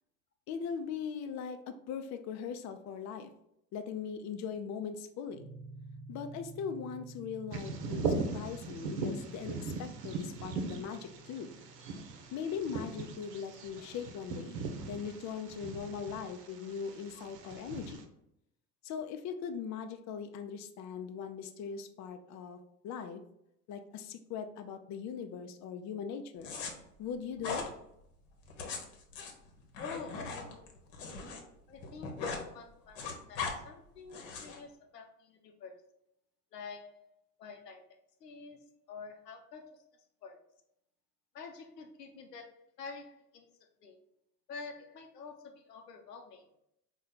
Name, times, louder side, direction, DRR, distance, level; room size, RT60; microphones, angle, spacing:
voice 1, 0.5-3.3 3.7-5.5 6.1-11.5 12.3-18.1 18.8-23.2 23.7-26.5 27.0-27.7, left 6 dB, 40° left, 7 dB, 0.5 m, -40 dB
sound 1, 5.3-15.1, right 3 dB, 20° right, 1.0 m, -53 dB
Bird vocalization bird call bird song, 7.5-18.0, right 3 dB, 80° right, 0.7 m, -39 dB
sound 2, 26.4-26.7 27.4-27.7 28.4-31.4 31.7-32.4 32.7-33.5 34.1-34.6, left 4 dB, 55° left, 1.0 m, -39 dB
voice 2, 29.8-30.6 31.7-35.8 36.5-37.1 37.4-37.8 38.2-38.6 38.9-39.8 40.2-40.4 41.3-43.5 43.8-44.0 44.5-46.5, left 4 dB, 85° left, 4 dB, 0.7 m, -48 dB
4.2 x 2.3 x 3.8 m, 0.78 s
hypercardioid pair, 70°, 47 cm